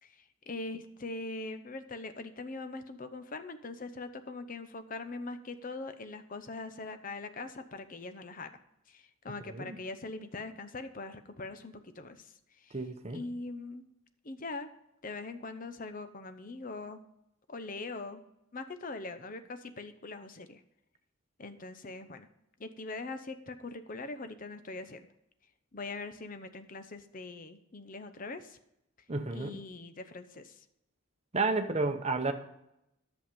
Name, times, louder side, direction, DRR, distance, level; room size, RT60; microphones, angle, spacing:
voice 1, 0.0-8.5 8.9-12.8 13.1-13.8 14.2-14.7 15.0-17.0 17.5-18.2 18.5-20.6 21.4-22.3 22.6-25.1 25.7-28.6 29.3-30.6, left 3 dB, 40° left, 10 dB, 0.7 m, -42 dB
voice 2, 12.7-13.2 29.1-29.6 31.3-32.3, right 3 dB, 30° right, 7 dB, 0.9 m, -31 dB
10.5 x 7.1 x 5.1 m, 0.84 s
head